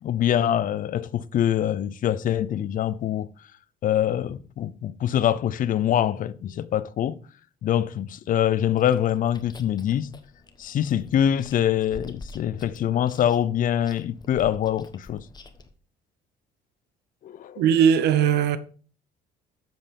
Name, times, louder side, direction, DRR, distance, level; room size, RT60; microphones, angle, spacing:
voice 1, 0.0-3.3 3.8-7.2 7.6-10.1 10.6-15.2 17.2-17.6, left 10 dB, 55° left, 0.7 m, -24 dB
Chewing mastication, 8.7-15.7, left 3 dB, 25° left, 1.2 m, -47 dB
voice 2, 17.6-18.6, right 8 dB, 75° right, 1.0 m, -19 dB
8.0 x 7.3 x 5.3 m
cardioid pair, 110°, 17 cm